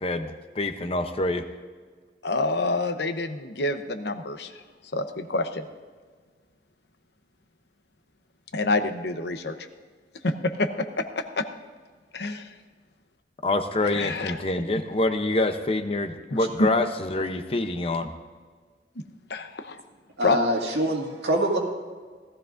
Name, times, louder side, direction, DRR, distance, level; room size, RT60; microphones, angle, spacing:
voice 1, 0.0-1.4 13.4-18.1, left 2 dB, 35° left, 8 dB, 0.7 m, -26 dB
voice 2, 2.2-4.5 4.9-5.6 8.5-9.5 10.2-11.0 11.4-11.5 12.1-12.5 13.8-14.4 19.3-19.8 20.2-20.4, left 2 dB, 70° left, 8 dB, 0.8 m, -27 dB
voice 3, 20.2-21.6, right 1 dB, 70° right, 0 dB, 2.0 m, -24 dB
17.5 x 13.5 x 2.6 m, 1.5 s
head